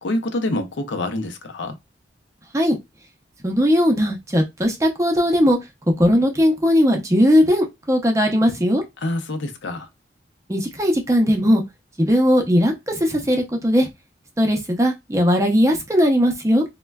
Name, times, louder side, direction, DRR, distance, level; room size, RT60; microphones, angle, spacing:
voice 1, 0.0-1.8 9.0-9.9, left 1 dB, 75° left, 0.5 m, -26 dB
voice 2, 3.4-5.6 6.0-8.8 10.5-11.6 12.0-13.9 14.4-16.6, equal, 15° right, 0.5 m, -18 dB
4.2 x 2.1 x 2.2 m
head